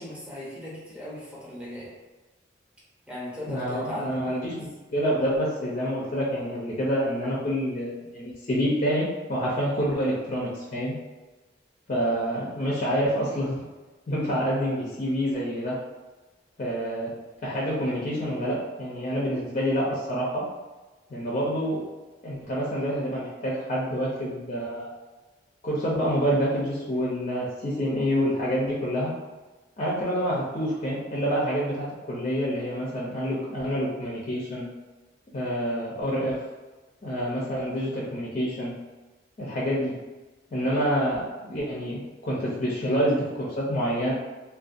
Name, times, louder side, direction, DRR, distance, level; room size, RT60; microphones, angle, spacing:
voice 1, 0.0-1.9 3.1-4.6, equal, 5° right, -8 dB, 0.7 m, -37 dB
voice 2, 3.5-11.0 11.9-13.6 14.1-15.8 16.6-17.1 17.4-20.4 21.1-21.9 22.2-24.9 25.6-29.1 29.8-34.7 35.3-36.5 37.0-38.7 39.4-40.0 40.5-44.1, equal, 40° left, -5 dB, 0.5 m, -27 dB
2.5 x 2.2 x 2.5 m, 1.2 s
head